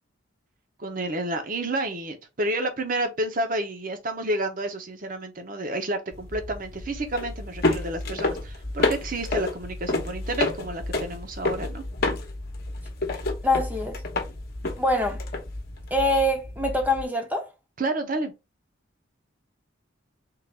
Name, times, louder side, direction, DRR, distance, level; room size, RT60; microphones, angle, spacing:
voice 1, 0.8-11.8 17.8-18.3, right 2 dB, 45° right, 0.8 m, -30 dB
sound 1, 6.1-17.0, left 2 dB, 50° left, 0.9 m, -30 dB
voice 2, 13.4-14.0 14.8-15.2 15.9-17.5, left 1 dB, 10° right, 0.7 m, -24 dB
3.8 x 2.5 x 4.3 m
head